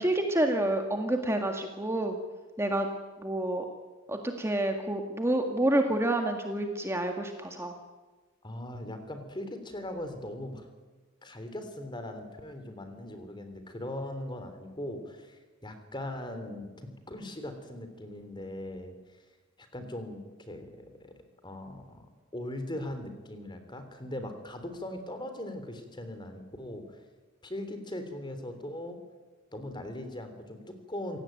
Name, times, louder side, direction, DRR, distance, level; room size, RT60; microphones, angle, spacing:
voice 1, 0.0-2.2 2.6-2.9 3.2-3.7 4.1-7.7, right 1 dB, 15° right, 4 dB, 1.8 m, -28 dB
voice 2, 8.4-10.7 11.2-16.7 17.1-19.0 19.6-21.1 21.4-22.1 22.3-27.0 27.4-29.0 29.5-31.2, left 1 dB, 20° left, 8 dB, 3.4 m, -40 dB
27.0 x 17.0 x 9.1 m, 1.3 s
head